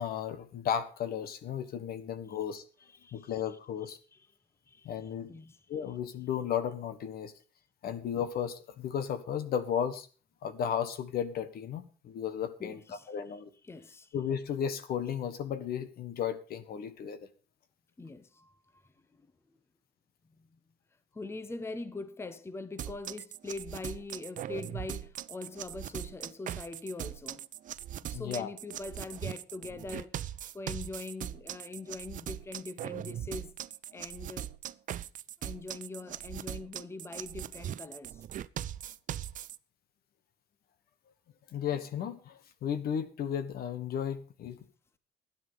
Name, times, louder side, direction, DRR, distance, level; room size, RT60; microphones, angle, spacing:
voice 1, 0.0-2.6 3.1-4.0 4.8-5.3 5.7-7.3 7.8-10.1 10.4-13.5 14.1-17.2 28.1-28.5 41.5-44.6, left 8 dB, 65° left, 1.5 m, -34 dB
voice 2, 2.8-4.3 4.7-5.6 12.6-13.1 13.6-14.1 18.0-19.3 20.3-20.6 21.1-27.5 28.0-33.5 33.9-34.5 35.4-38.2, left 3 dB, 15° left, 0.9 m, -43 dB
sound 1, 22.8-39.6, right 11 dB, 50° right, 0.5 m, -40 dB
12.5 x 10.5 x 5.2 m
cardioid pair, 110°, 17 cm